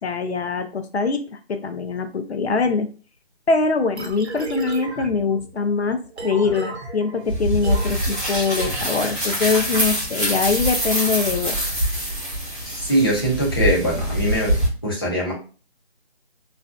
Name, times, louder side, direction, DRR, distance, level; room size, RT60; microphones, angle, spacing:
voice 1, 0.0-2.9 3.5-11.6, left 4 dB, 80° left, 6 dB, 0.5 m, -23 dB
sound 1, 4.0-9.7, right 3 dB, 90° right, 0.8 m, -35 dB
sound 2, 7.3-14.7, equal, 15° right, 0.7 m, -24 dB
voice 2, 12.7-14.5 14.8-15.3, right 1 dB, 25° left, -6 dB, 0.6 m, -22 dB
2.4 x 2.3 x 2.2 m, 0.36 s
figure-of-eight pair, 170°, 32 cm